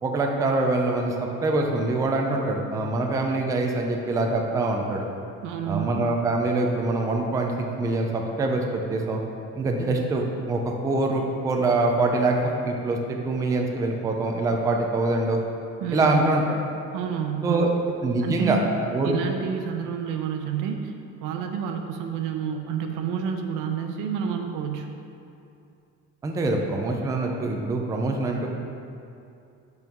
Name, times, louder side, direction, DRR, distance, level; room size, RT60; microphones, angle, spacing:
voice 1, 0.0-5.1 5.7-9.2 9.6-15.4 15.9-16.6 17.4-17.7 18.0-18.6 18.9-19.2 26.2-28.5, right 2 dB, 10° right, 1 dB, 0.3 m, -24 dB
voice 2, 5.4-5.9 15.8-16.4 16.9-17.7 18.2-18.7 19.0-20.9 21.2-24.9, right 7 dB, 85° right, 4 dB, 0.7 m, -29 dB
5.6 x 4.6 x 5.2 m, 2.6 s
cardioid pair, 165°, 31 cm